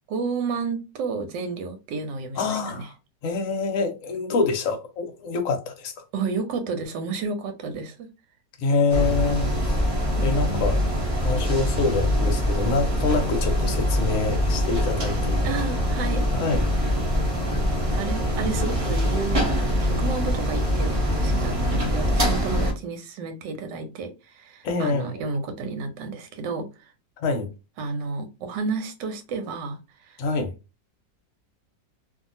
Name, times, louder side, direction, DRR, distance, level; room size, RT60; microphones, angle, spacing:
voice 1, 0.1-2.9 6.1-8.1 10.2-10.6 15.4-16.2 16.8-17.0 17.9-26.9 27.8-30.2, right 4 dB, 85° right, 1.3 m, -31 dB
voice 2, 2.4-2.9 3.2-5.9 8.6-9.8 10.2-10.8 11.2-15.5 16.3-16.7 24.6-25.2 27.2-27.5 30.2-30.5, left 3 dB, 65° left, 0.8 m, -26 dB
sound 1, 8.9-22.7, equal, 65° right, 0.3 m, -24 dB
2.7 x 2.5 x 2.6 m
omnidirectional pair, 1.9 m